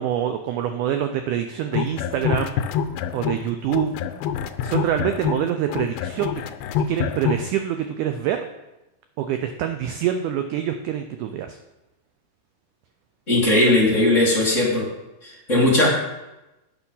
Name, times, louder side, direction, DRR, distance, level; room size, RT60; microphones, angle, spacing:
voice 1, 0.0-2.5 3.1-4.0 4.6-6.5 6.9-8.5 9.2-11.6, right 10 dB, 85° right, 7 dB, 1.8 m, -25 dB
sound 1, 1.6-3.4 3.7-7.5, left 8 dB, 90° left, 2.5 m, -26 dB
voice 2, 13.3-14.9 15.2-15.9, left 1 dB, 20° left, -5 dB, 2.5 m, -18 dB
9.1 x 6.9 x 5.6 m, 0.98 s
omnidirectional pair, 4.3 m